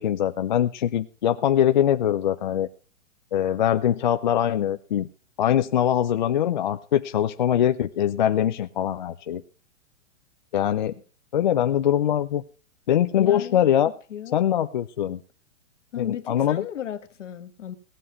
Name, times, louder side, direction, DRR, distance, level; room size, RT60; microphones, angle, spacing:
voice 1, 0.0-2.7 3.3-5.1 5.4-9.4 10.5-10.9 11.3-12.4 12.9-13.9 14.3-15.2 16.0-16.6, left 10 dB, 40° left, 8 dB, 0.5 m, -22 dB
voice 2, 13.1-14.4 15.9-17.7, left 10 dB, 70° left, 10 dB, 1.6 m, -35 dB
17.0 x 7.5 x 5.4 m, 0.38 s
hypercardioid pair, 170°, 38 cm